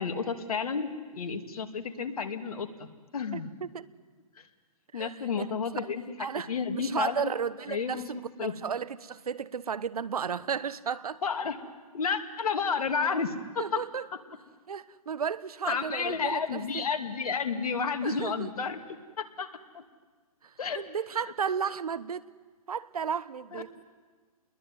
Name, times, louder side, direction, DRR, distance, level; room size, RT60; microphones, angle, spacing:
voice 1, 0.0-3.5 4.4-4.5 4.9-6.0 6.5-7.3 7.7-8.1 8.4-8.5 11.2-11.6 11.9-13.8 15.7-19.5 19.7-19.8 20.6-20.8 23.5-23.6, left 5 dB, 75° left, 7 dB, 2.7 m, -31 dB
voice 2, 3.3-3.9 4.9-5.4 5.7-5.9 6.2-6.5 6.8-11.2 13.6-14.1 14.7-16.8 18.0-18.5 20.4-22.2 22.7-23.7, right 7 dB, 85° right, 18 dB, 1.1 m, -34 dB
29.0 x 21.5 x 9.5 m, 1.4 s
hypercardioid pair, 140°, 19 cm